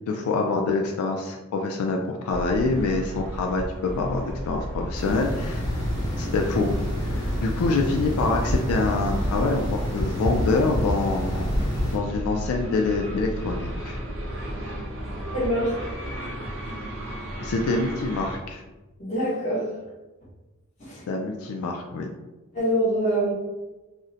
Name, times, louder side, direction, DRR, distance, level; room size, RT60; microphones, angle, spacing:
voice 1, 0.1-5.7 6.2-6.7 7.0-11.5 11.9-14.0 17.4-18.6 21.1-22.1, left 3 dB, 80° left, 2 dB, 0.3 m, -26 dB
sound 1, 2.3-18.4, equal, 60° right, 0.7 m, -34 dB
sound 2, 4.9-12.0, equal, 15° left, 1.1 m, -28 dB
voice 2, 15.3-15.7 19.0-19.7 20.8-21.0 22.5-23.3, equal, 30° left, -6 dB, 1.1 m, -24 dB
2.5 x 2.1 x 3.9 m, 1.1 s
head